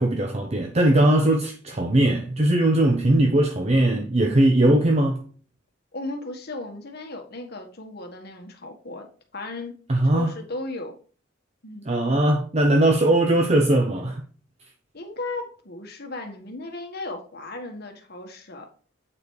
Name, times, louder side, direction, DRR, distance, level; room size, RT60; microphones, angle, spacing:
voice 1, 0.0-5.2 9.9-10.3 11.9-14.2, right 1 dB, 35° right, 0.8 m, -20 dB
voice 2, 5.9-9.1 9.3-9.8 10.0-10.9 11.6-11.9 14.9-18.7, left 2 dB, 55° left, 1.6 m, -36 dB
8.5 x 5.0 x 4.8 m
head